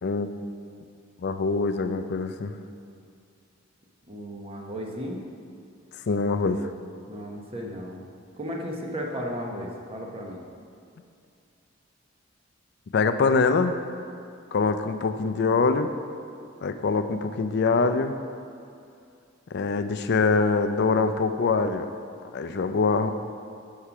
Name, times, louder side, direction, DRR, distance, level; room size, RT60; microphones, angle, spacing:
voice 1, 1.2-2.5 6.1-6.7 12.9-13.8 14.5-15.9 16.6-18.1 19.5-21.9 22.3-23.1, left 4 dB, 55° left, 9 dB, 0.4 m, -24 dB
voice 2, 4.1-5.2 7.1-8.1 8.4-10.4, equal, 30° right, 0 dB, 0.9 m, -34 dB
6.5 x 5.6 x 5.8 m, 2.4 s
head